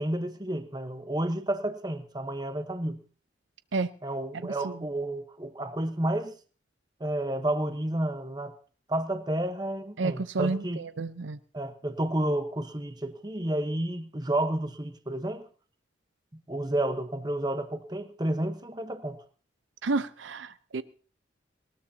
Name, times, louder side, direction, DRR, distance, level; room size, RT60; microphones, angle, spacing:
voice 1, 0.0-3.0 4.0-6.3 7.0-8.5 8.9-10.8 11.5-15.5 16.5-19.2, right 1 dB, 20° right, 1.0 m, -31 dB
voice 2, 4.4-4.8 10.0-11.4 19.8-20.8, right 3 dB, 80° right, 0.6 m, -31 dB
20.0 x 18.5 x 2.8 m
head